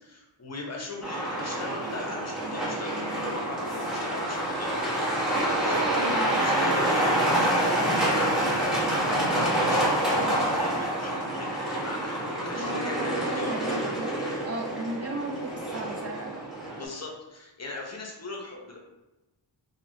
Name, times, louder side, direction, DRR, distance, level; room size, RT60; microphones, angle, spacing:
voice 1, 0.0-4.7 5.6-5.8 6.1-13.6 16.8-18.8, left 2 dB, 35° left, 0 dB, 0.9 m, -39 dB
Truck, 1.0-16.8, right 1 dB, ahead, 1.2 m, -27 dB
voice 2, 6.0-6.4 12.5-14.1 14.4-16.4, right 2 dB, 35° right, 1 dB, 0.4 m, -35 dB
2.9 x 2.8 x 2.7 m, 1.0 s
cardioid pair, 55°, 46 cm